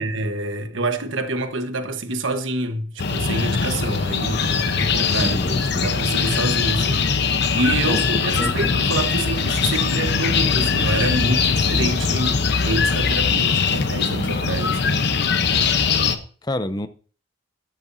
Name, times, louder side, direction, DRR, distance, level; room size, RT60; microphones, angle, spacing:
voice 1, 0.0-15.0 15.5-15.8, right 2 dB, 75° right, 1.3 m, -27 dB
sound 1, 3.0-16.2, left 5 dB, 60° left, 0.9 m, -21 dB
voice 2, 5.2-5.9 7.8-8.6 16.4-16.9, left 1 dB, 20° left, 0.6 m, -28 dB
13.0 x 11.0 x 2.7 m
head